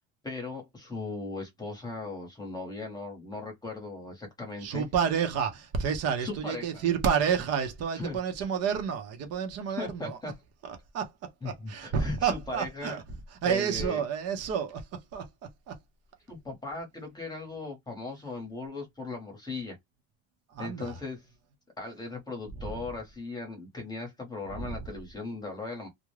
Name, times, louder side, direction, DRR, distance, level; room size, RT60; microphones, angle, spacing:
voice 1, 0.2-4.9 6.2-6.8 8.0-8.2 9.8-10.3 11.4-13.0 13.4-14.0 16.3-19.8 20.6-21.2 21.8-25.9, left 3 dB, 10° left, 0.9 m, -38 dB
voice 2, 4.6-10.2 10.6-13.0 13.3-15.8 20.5-21.0 22.7-22.9 24.5-24.9, right 7 dB, 45° right, 0.7 m, -30 dB
2.4 x 2.1 x 3.1 m
cardioid pair, 155°, 33 cm